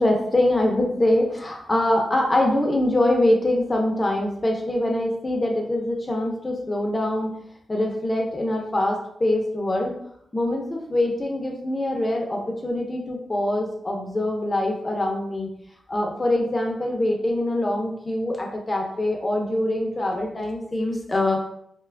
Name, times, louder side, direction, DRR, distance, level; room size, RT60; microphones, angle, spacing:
voice 1, 0.0-7.4 7.7-9.9 10.3-15.5 15.9-21.4, left 1 dB, 25° left, 0 dB, 0.6 m, -24 dB
2.9 x 2.3 x 3.4 m, 0.69 s
wide cardioid pair, 105°, 0 cm